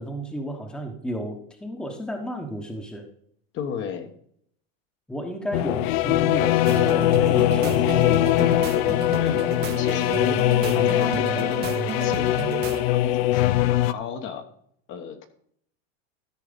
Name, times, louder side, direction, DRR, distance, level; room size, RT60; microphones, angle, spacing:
voice 1, 0.0-3.0 5.1-8.5, equal, 5° left, 4 dB, 1.1 m, -33 dB
voice 2, 3.5-4.1 9.2-9.5 9.8-10.4 10.7-11.6 12.0-12.6 12.9-14.4 14.9-15.2, left 7 dB, 40° left, 7 dB, 1.1 m, -34 dB
sound 1, 5.5-13.9, left 14 dB, 70° left, 0.5 m, -21 dB
sound 2, 6.7-12.9, right 9 dB, 30° right, 0.9 m, -32 dB
13.5 x 4.7 x 5.1 m, 0.66 s
supercardioid pair, 140°, 32 cm